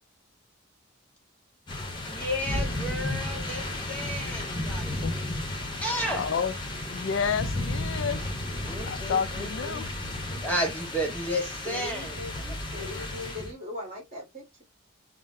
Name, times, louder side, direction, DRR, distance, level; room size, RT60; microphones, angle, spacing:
sound 1, 1.7-13.5, left 1 dB, 20° left, 0.8 m, -33 dB
voice 1, 2.0-5.4 5.8-6.3 8.7-9.9 10.3-12.2 12.5-12.6, equal, 5° left, 1.1 m, -33 dB
voice 2, 6.2-6.5 6.9-8.2 8.8-9.9, left 6 dB, 65° left, 0.3 m, -30 dB
voice 3, 11.6-14.6, left 2 dB, 35° right, 1.6 m, -39 dB
5.5 x 2.0 x 2.5 m
head